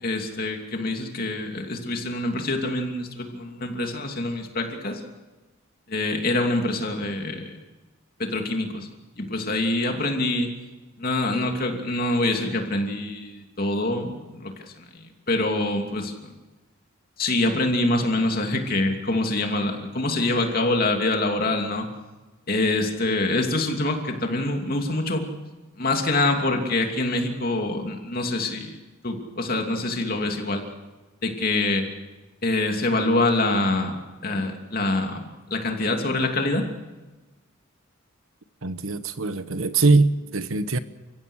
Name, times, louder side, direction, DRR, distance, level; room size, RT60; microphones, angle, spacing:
voice 1, 0.0-5.0 5.9-7.5 8.2-8.9 9.2-10.5 11.0-14.9 15.3-16.3 17.2-21.9 22.5-25.3 25.8-28.7 29.0-30.6 31.2-31.9 32.4-34.0 34.2-36.7, left 2 dB, 45° left, 2.8 m, -25 dB
voice 2, 38.6-40.8, right 3 dB, 75° right, 1.1 m, -22 dB
30.0 x 16.0 x 6.4 m
head